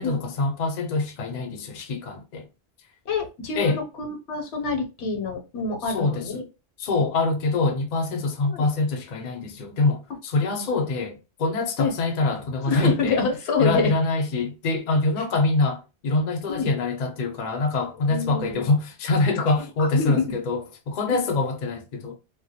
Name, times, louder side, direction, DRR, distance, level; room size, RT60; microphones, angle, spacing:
voice 1, 0.0-2.5 3.5-3.8 5.9-6.4 6.8-13.2 13.6-22.2, left 3 dB, 55° left, 0.5 m, -25 dB
voice 2, 3.1-6.4 8.4-8.7 10.7-10.8 11.8-11.9 12.7-13.9 16.5-16.7 18.0-18.6 19.8-20.2 21.1-21.2, left 4 dB, 75° left, 0.9 m, -27 dB
2.2 x 2.1 x 2.7 m
omnidirectional pair, 1.1 m